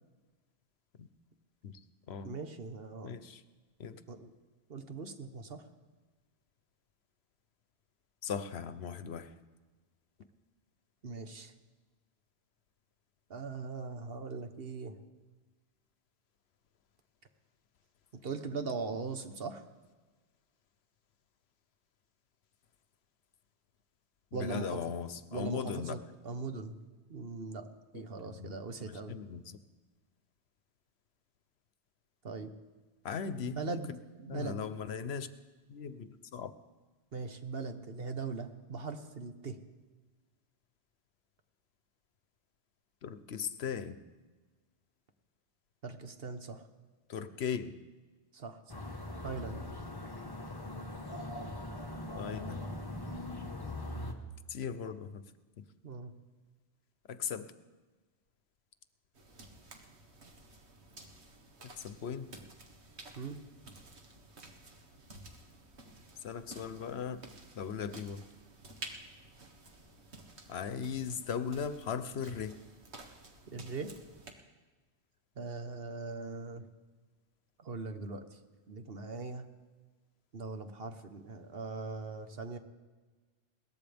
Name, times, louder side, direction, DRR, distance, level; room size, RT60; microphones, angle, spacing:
voice 1, 2.2-3.1 4.1-4.3 4.7-5.6 11.0-11.5 13.3-15.0 18.2-19.6 24.3-24.8 25.3-26.7 27.1-27.7 27.9-29.2 32.2-32.5 33.4-33.9 34.2-34.6 37.1-39.6 45.8-46.6 48.3-48.9 49.2-49.6 55.8-56.1 63.1-63.4 73.5-73.9 75.4-76.6 77.6-78.4 78.7-79.4 80.3-82.6, right 4 dB, 60° right, 8 dB, 1.3 m, -40 dB
voice 2, 3.0-3.4 3.8-4.0 8.2-9.3 24.3-25.9 27.9-28.5 28.8-29.6 33.0-34.0 34.3-35.3 35.7-36.5 43.0-44.0 47.1-47.7 52.1-52.7 54.5-55.2 57.1-57.5 61.6-62.3 66.2-67.2 67.5-68.2 70.5-72.6, left 7 dB, 70° left, 12 dB, 1.0 m, -38 dB
sound 1, 48.7-54.1, left 1 dB, 20° left, 1.3 m, -41 dB
sound 2, 59.1-74.3, right 2 dB, 75° right, 1.8 m, -52 dB
21.5 x 18.5 x 3.5 m, 1.3 s
omnidirectional pair, 1.1 m